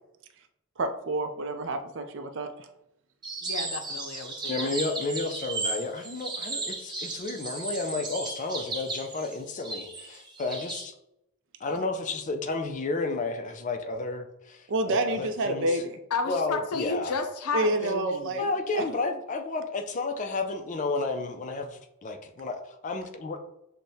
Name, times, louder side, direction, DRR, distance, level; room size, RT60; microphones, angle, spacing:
voice 1, 0.8-2.7 14.7-16.0 17.5-18.4 18.8-18.9, right 2 dB, 60° right, 7 dB, 0.4 m, -28 dB
sound 1, 3.2-10.9, right 3 dB, 20° right, 0.6 m, -35 dB
voice 2, 3.4-4.7 11.7-11.8 16.1-18.4, left 4 dB, 85° left, 7 dB, 0.5 m, -32 dB
voice 3, 4.5-10.9 11.6-15.8 16.3-17.1 18.4-23.4, left 3 dB, 35° left, 5 dB, 0.4 m, -32 dB
6.3 x 2.1 x 2.7 m, 0.83 s
head